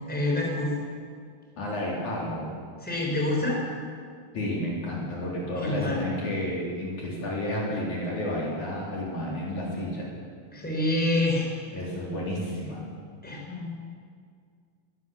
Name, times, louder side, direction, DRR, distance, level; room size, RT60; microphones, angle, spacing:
voice 1, 0.1-0.7 2.8-3.6 5.5-6.0 10.5-11.5 13.2-13.7, left 1 dB, ahead, -2 dB, 4.8 m, -27 dB
voice 2, 1.6-2.5 4.3-10.1 11.7-12.8, left 1 dB, 55° left, -4 dB, 5.0 m, -31 dB
22.0 x 18.0 x 7.2 m, 2.1 s
omnidirectional pair, 4.3 m